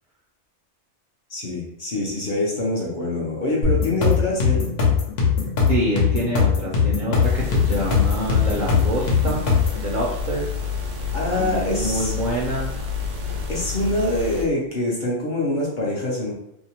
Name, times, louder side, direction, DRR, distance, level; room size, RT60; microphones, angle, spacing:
voice 1, 1.3-4.6 11.1-12.2 13.5-16.3, left 1 dB, 50° left, -4 dB, 0.7 m, -25 dB
sound 1, 3.6-9.8, left 6 dB, 75° left, 1.1 m, -20 dB
voice 2, 5.7-9.5 9.8-10.5 11.3-12.8, right 1 dB, 60° right, -4 dB, 0.5 m, -26 dB
sound 2, 7.2-14.5, left 5 dB, 85° right, 0.9 m, -29 dB
2.7 x 2.1 x 2.8 m, 0.79 s
omnidirectional pair, 1.2 m